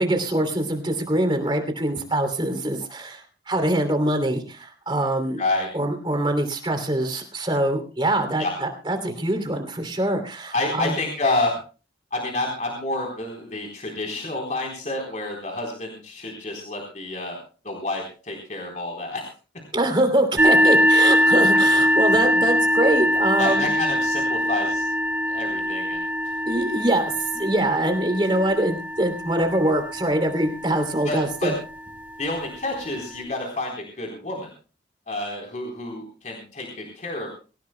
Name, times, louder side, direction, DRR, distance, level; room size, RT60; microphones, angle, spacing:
voice 1, 0.0-5.4 5.7-10.9 19.7-23.7 26.5-31.5, right 1 dB, 25° right, 6 dB, 2.9 m, -24 dB
voice 2, 5.4-5.7 8.4-8.5 10.5-11.6 12.1-17.4 17.6-19.3 23.4-24.9 25.2-26.3 31.0-31.5 32.2-34.5 35.1-37.3, left 2 dB, 40° left, 0 dB, 3.9 m, -29 dB
sound 1, 20.4-31.9, equal, 10° right, 4.1 m, -22 dB
25.0 x 16.0 x 2.2 m, 0.35 s
head